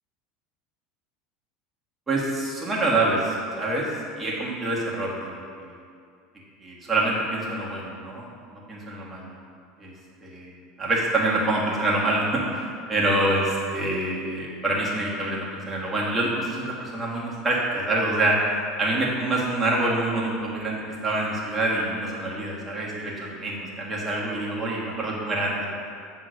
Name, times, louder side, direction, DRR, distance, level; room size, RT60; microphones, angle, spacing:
voice 1, 2.1-3.9 4.2-5.8 6.6-8.3 8.7-9.3 9.8-9.9 10.2-10.5 10.8-18.4 18.8-25.7, right 2 dB, 15° right, -5 dB, 1.6 m, -26 dB
7.8 x 3.6 x 6.4 m, 2.3 s
supercardioid pair, 135°, 0 cm